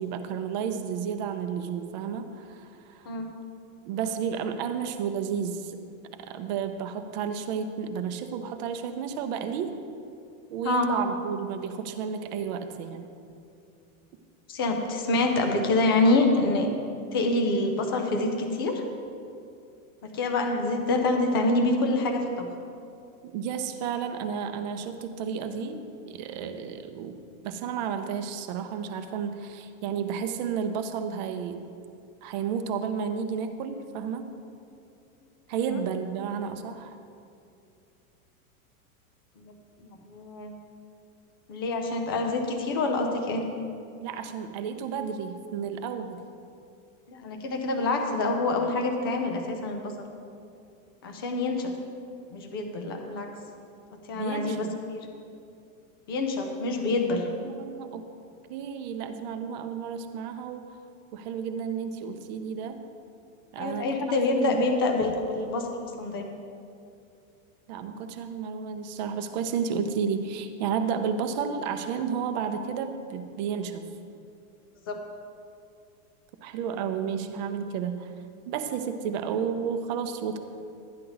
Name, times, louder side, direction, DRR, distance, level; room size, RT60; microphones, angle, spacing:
voice 1, 0.0-3.1 3.8-5.8 6.1-9.7 10.5-13.1 23.3-25.8 26.1-27.2 27.4-31.6 32.2-34.3 35.5-37.0 44.0-46.2 54.1-54.7 57.4-58.1 58.5-60.8 61.1-62.8 63.5-64.7 67.7-73.9 76.4-78.1 78.5-80.4, right 7 dB, 35° right, 8 dB, 0.6 m, -32 dB
voice 2, 14.5-16.7 17.1-18.8 20.1-22.5 39.4-39.5 39.8-40.5 41.5-43.4 47.1-49.9 51.0-51.7 52.3-53.3 54.1-55.1 56.1-57.3 63.6-65.7 66.0-66.3 74.9-75.0, left 2 dB, 20° left, 3 dB, 0.3 m, -26 dB
12.5 x 10.0 x 3.9 m, 2.5 s
supercardioid pair, 170°, 41 cm